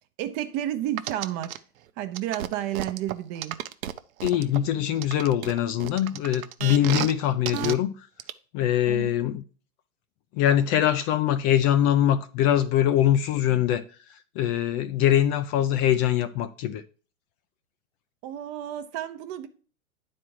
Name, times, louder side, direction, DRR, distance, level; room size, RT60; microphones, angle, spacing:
voice 1, 0.2-1.5 2.0-3.6 6.8-7.1 8.9-9.1 18.2-19.5, right 12 dB, 40° right, 0.8 m, -31 dB
sound 1, 1.0-1.6 2.1-4.6 5.0-7.1 7.5-7.7 8.2-8.3, right 12 dB, 75° right, 0.7 m, -32 dB
voice 2, 4.2-8.1 8.5-9.4 10.3-13.8 14.1-16.8, left 11 dB, 35° left, 0.5 m, -23 dB
9.8 x 4.3 x 4.7 m
hypercardioid pair, 120°, 41 cm